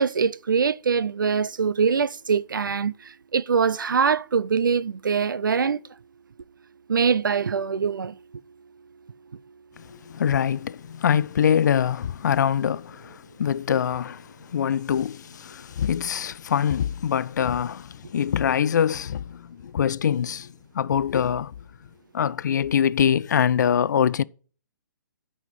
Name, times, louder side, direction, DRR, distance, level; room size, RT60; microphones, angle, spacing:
voice 1, 0.0-5.8 6.9-8.2, right 6 dB, 80° right, 0.5 m, -23 dB
voice 2, 9.8-20.5 20.7-21.5 22.1-24.2, left 8 dB, 65° left, 0.4 m, -24 dB
9.2 x 5.6 x 5.7 m
hypercardioid pair, 135°, 11 cm